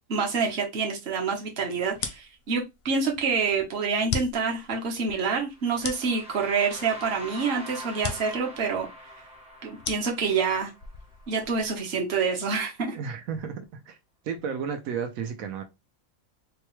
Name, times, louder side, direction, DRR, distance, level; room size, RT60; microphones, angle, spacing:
voice 1, 0.1-8.9 9.6-10.7 11.3-13.0, right 5 dB, 50° right, 1.1 m, -27 dB
sound 1, 1.9-11.8, left 6 dB, 60° left, 0.7 m, -39 dB
sound 2, 5.5-11.5, equal, 5° right, 0.6 m, -44 dB
voice 2, 12.9-14.0 14.2-15.6, right 6 dB, 85° right, 1.1 m, -33 dB
4.0 x 2.3 x 3.0 m
omnidirectional pair, 1.4 m